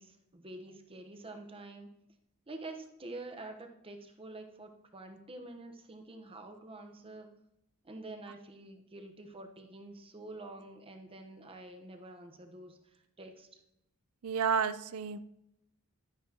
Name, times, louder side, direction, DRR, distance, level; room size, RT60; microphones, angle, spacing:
voice 1, 0.0-1.9 2.5-7.3 7.8-13.6, right 2 dB, 25° right, 5 dB, 1.0 m, -47 dB
voice 2, 14.2-15.2, right 6 dB, 70° right, 14 dB, 0.5 m, -31 dB
12.0 x 9.6 x 2.9 m, 0.84 s
head